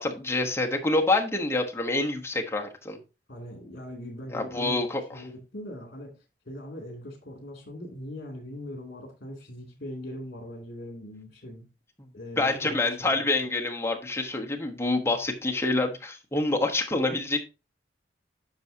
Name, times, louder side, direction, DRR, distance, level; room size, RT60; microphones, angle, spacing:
voice 1, 0.0-3.0 4.3-5.2 12.4-17.4, left 2 dB, 15° left, 2 dB, 1.2 m, -27 dB
voice 2, 3.3-4.8 5.1-11.7 12.1-13.5, equal, 55° left, 1 dB, 2.7 m, -41 dB
10.0 x 6.2 x 2.8 m, 0.29 s
head